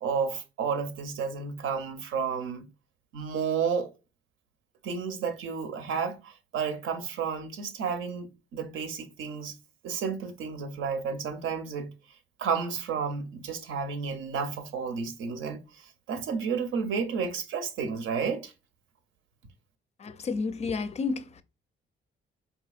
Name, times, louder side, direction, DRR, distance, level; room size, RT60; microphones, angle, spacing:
voice 1, 0.0-2.7 3.1-3.9 4.8-9.6 9.8-11.9 12.4-18.5, right 6 dB, 85° right, 0.6 m, -31 dB
voice 2, 20.0-21.4, left 4 dB, 35° left, 0.4 m, -31 dB
3.9 x 2.7 x 2.3 m
cardioid pair, 90°, 20 cm